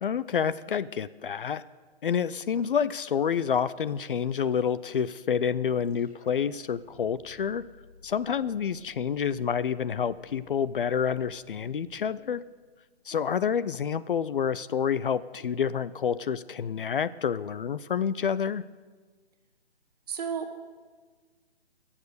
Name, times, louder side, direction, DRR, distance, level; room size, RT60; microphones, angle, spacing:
voice 1, 0.0-1.6 2.0-7.7 8.0-12.4 13.1-18.6, left 7 dB, 55° left, 16 dB, 0.5 m, -28 dB
sound 1, 5.7-12.9, left 3 dB, 80° left, 4.6 m, -58 dB
voice 2, 20.1-20.7, right 6 dB, 40° right, 7 dB, 1.3 m, -35 dB
20.5 x 7.3 x 6.7 m, 1.4 s
hypercardioid pair, 155°, 31 cm